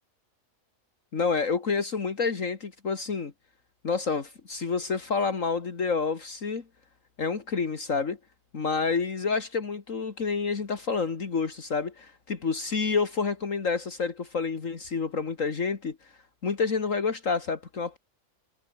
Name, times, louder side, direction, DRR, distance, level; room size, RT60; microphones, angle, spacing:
voice 1, 1.1-3.3 3.8-6.6 7.2-8.2 8.5-16.0 16.4-18.0, left 5 dB, 65° left, 2.4 m, -28 dB
omnidirectional pair, 1.5 m